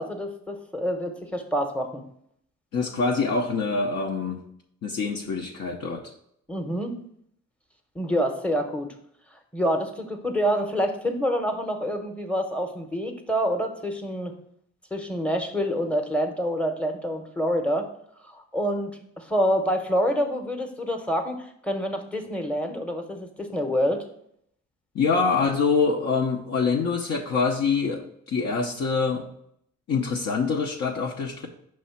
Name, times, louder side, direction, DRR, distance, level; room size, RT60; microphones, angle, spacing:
voice 1, 0.0-2.0 6.5-7.0 7.9-8.9 9.5-14.3 14.9-17.9 18.2-24.0, equal, 5° left, 5 dB, 0.8 m, -27 dB
voice 2, 2.7-4.4 4.8-6.1 24.9-29.3 29.9-31.5, left 4 dB, 55° left, 0 dB, 0.7 m, -25 dB
5.5 x 3.2 x 5.6 m, 0.70 s
cardioid pair, 90°, 30 cm